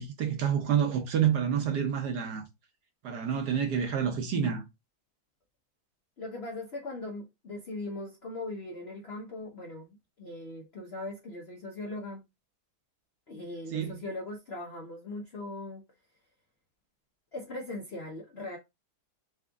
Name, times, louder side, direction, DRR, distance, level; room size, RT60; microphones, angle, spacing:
voice 1, 0.0-2.4 3.0-4.6 13.7-14.0, right 8 dB, 60° right, 1.2 m, -28 dB
voice 2, 6.2-12.2 13.3-15.8 17.3-18.6, left 2 dB, 70° left, 0.5 m, -39 dB
4.3 x 2.4 x 3.5 m
omnidirectional pair, 2.2 m